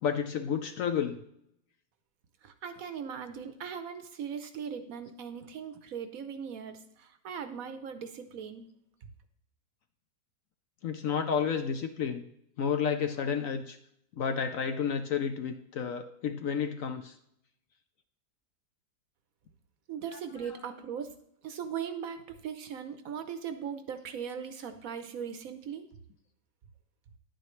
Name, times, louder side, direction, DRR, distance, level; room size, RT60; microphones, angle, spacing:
voice 1, 0.0-1.2 10.8-12.3 12.6-13.8 14.2-17.2, left 7 dB, 65° left, 8 dB, 0.9 m, -31 dB
voice 2, 2.4-8.7 9.0-9.1 19.9-21.1 21.4-25.9, right 7 dB, 65° right, 9 dB, 1.0 m, -39 dB
10.5 x 8.9 x 3.1 m, 0.75 s
omnidirectional pair, 1.8 m